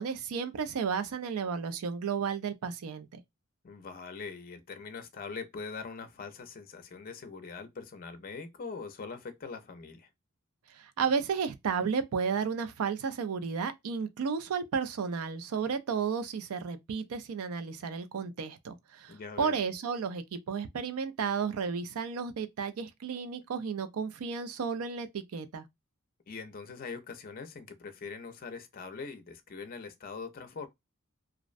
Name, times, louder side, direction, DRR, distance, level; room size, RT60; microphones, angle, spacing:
voice 1, 0.0-3.2 10.7-25.7, right 6 dB, 80° right, 0.4 m, -33 dB
voice 2, 3.6-10.1 19.1-19.6 26.3-30.7, left 4 dB, 40° left, 0.4 m, -42 dB
2.4 x 2.0 x 2.4 m
head